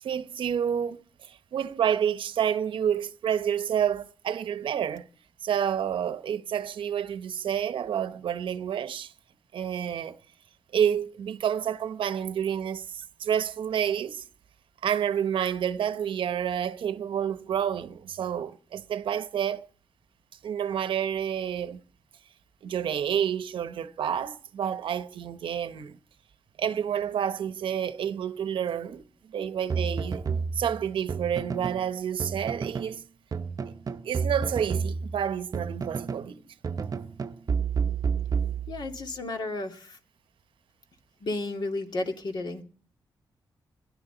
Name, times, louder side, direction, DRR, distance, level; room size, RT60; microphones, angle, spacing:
voice 1, 0.0-5.0 5.4-9.1 9.5-10.2 10.7-14.2 14.8-19.7 20.4-21.8 22.6-26.0 26.6-30.2 30.5-33.0 34.0-36.4, right 9 dB, 90° right, 0.9 m, -29 dB
sound 1, 29.7-31.9 32.2-33.0 33.3-36.3 36.6-39.1, right 5 dB, 45° right, 0.7 m, -30 dB
voice 2, 38.7-40.0 41.2-42.6, left 2 dB, 60° left, 2.5 m, -32 dB
21.0 x 16.0 x 4.0 m
cardioid pair, 105°, 8 cm